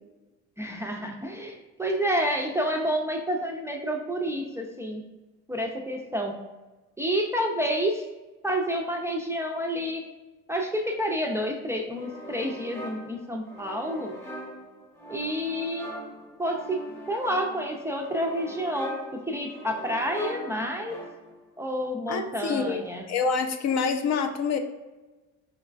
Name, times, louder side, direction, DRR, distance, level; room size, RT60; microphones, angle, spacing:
voice 1, 0.6-5.0 5.5-6.3 7.0-8.0 8.4-10.0 10.5-14.1 15.1-16.0 16.4-19.0 19.3-21.0 21.6-23.0, equal, 10° right, 0 dB, 0.3 m, -29 dB
sound 1, 12.0-21.5, right 1 dB, 10° left, 0.8 m, -41 dB
voice 2, 22.1-22.8 23.1-24.6, left 5 dB, 55° left, 6 dB, 0.5 m, -26 dB
4.5 x 2.2 x 2.4 m, 1.1 s
cardioid pair, 90°, 32 cm